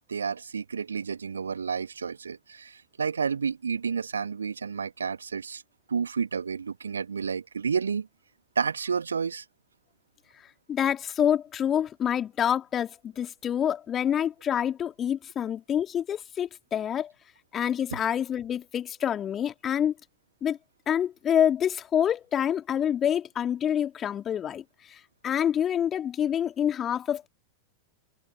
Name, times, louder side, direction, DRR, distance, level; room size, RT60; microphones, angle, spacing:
voice 1, 0.1-5.6 5.9-8.1 8.6-9.4, right 6 dB, 70° right, 2.2 m, -30 dB
voice 2, 10.7-17.1 17.5-19.9 20.4-20.6 20.9-24.6 25.2-27.3, left 9 dB, 25° left, 3.2 m, -27 dB
figure-of-eight pair, 90°, 0 cm